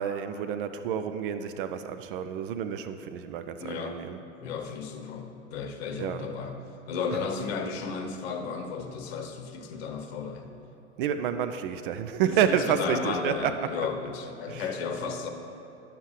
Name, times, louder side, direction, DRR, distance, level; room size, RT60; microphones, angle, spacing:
voice 1, 0.0-4.2 6.0-6.3 11.0-13.7 14.5-14.7, right 8 dB, 50° right, 9 dB, 0.4 m, -29 dB
voice 2, 3.6-4.1 4.4-6.6 6.9-10.5 12.3-15.3, left 5 dB, 60° left, 6 dB, 0.9 m, -34 dB
10.5 x 7.1 x 3.2 m, 2.9 s
figure-of-eight pair, 95°, 36 cm